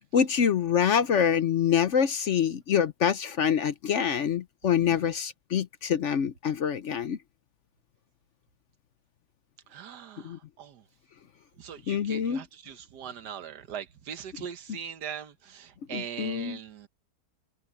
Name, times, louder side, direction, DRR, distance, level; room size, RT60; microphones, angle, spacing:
voice 1, 0.1-7.2 10.2-10.4 11.9-12.4 15.9-16.6, left 8 dB, 55° left, 0.9 m, -25 dB
voice 2, 4.6-5.0 9.7-10.8 11.6-16.9, right 8 dB, 85° right, 1.7 m, -41 dB
open air
omnidirectional pair, 1.7 m